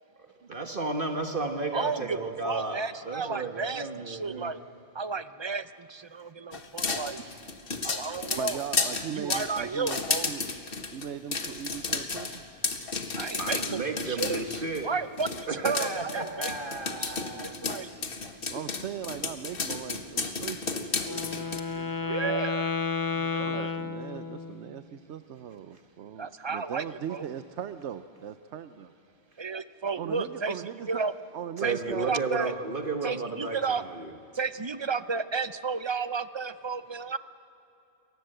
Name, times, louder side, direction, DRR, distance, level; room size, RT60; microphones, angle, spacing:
voice 1, 0.4-4.5 6.2-6.3 13.4-14.9 15.5-17.6 31.6-34.1, right 3 dB, 50° right, 5 dB, 1.5 m, -33 dB
voice 2, 1.7-2.2 2.4-4.6 4.9-7.2 7.8-8.6 9.1-10.3 13.2-14.5 14.8-16.5 17.0-17.9 22.1-22.7 23.1-23.7 26.2-26.8 27.1-27.3 29.4-30.6 30.9-31.1 31.6-31.7 32.1-32.5 33.0-33.8 34.3-37.2, right 5 dB, 30° right, 13 dB, 0.5 m, -32 dB
sound 1, 6.5-14.9 15.2-21.6, left 4 dB, 55° left, 1.6 m, -32 dB
voice 3, 8.4-10.4 10.9-12.4 18.5-22.3 23.4-28.9 30.0-31.1 31.3-32.1, right 9 dB, 85° right, 11 dB, 1.0 m, -39 dB
Wind instrument woodwind instrument, 21.0-24.6, left 5 dB, 30° left, 0.4 m, -32 dB
28.5 x 22.5 x 7.8 m, 2.9 s
omnidirectional pair, 1.1 m